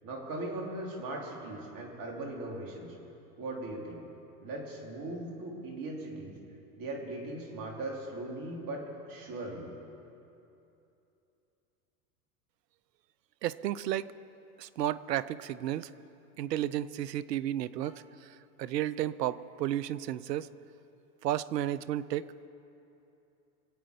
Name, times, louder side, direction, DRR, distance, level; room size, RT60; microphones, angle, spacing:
voice 1, 0.0-2.9 3.4-4.0 4.4-6.4 6.8-9.8 17.8-18.0, right 2 dB, 45° right, 0 dB, 3.5 m, -39 dB
voice 2, 13.4-14.1 14.6-15.9 16.4-18.0 18.6-20.5 21.2-22.3, right 12 dB, 80° right, 18 dB, 0.6 m, -32 dB
24.5 x 8.7 x 5.3 m, 2.8 s
hypercardioid pair, 100°, 48 cm